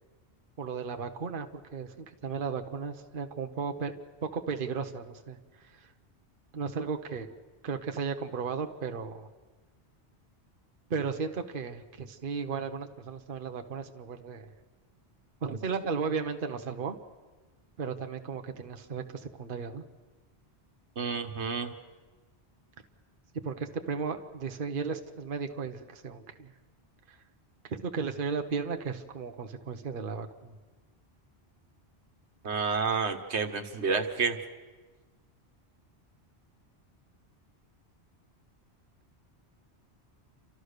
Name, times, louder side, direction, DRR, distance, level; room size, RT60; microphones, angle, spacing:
voice 1, 0.6-1.5 1.7-3.9 4.2-5.9 6.5-7.3 7.6-9.3 10.9-14.5 15.4-17.0 17.8-19.8 23.4-26.5 27.1-27.2 27.7-30.6, right 5 dB, 55° right, 6 dB, 1.1 m, -35 dB
voice 2, 21.0-21.7 32.4-34.4, right 5 dB, 90° right, 5 dB, 1.6 m, -29 dB
29.5 x 13.5 x 6.6 m, 1.4 s
omnidirectional pair, 1.1 m